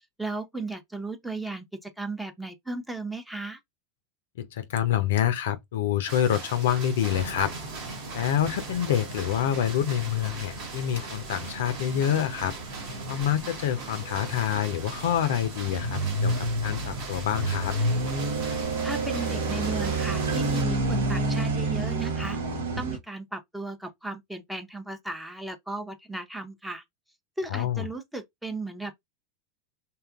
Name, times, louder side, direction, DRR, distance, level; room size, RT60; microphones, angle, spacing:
voice 1, 0.0-3.6 18.8-22.4 22.8-26.8 27.4-28.9, right 2 dB, 5° right, 0.6 m, -35 dB
voice 2, 4.5-7.5 8.1-12.5 13.1-17.7 27.5-27.9, left 10 dB, 70° left, 0.5 m, -27 dB
sound 1, 6.1-20.6, right 4 dB, 55° right, 1.0 m, -41 dB
sound 2, 7.1-23.0, right 2 dB, 80° right, 0.7 m, -31 dB
2.8 x 2.4 x 2.3 m
hypercardioid pair, 90°, 0 cm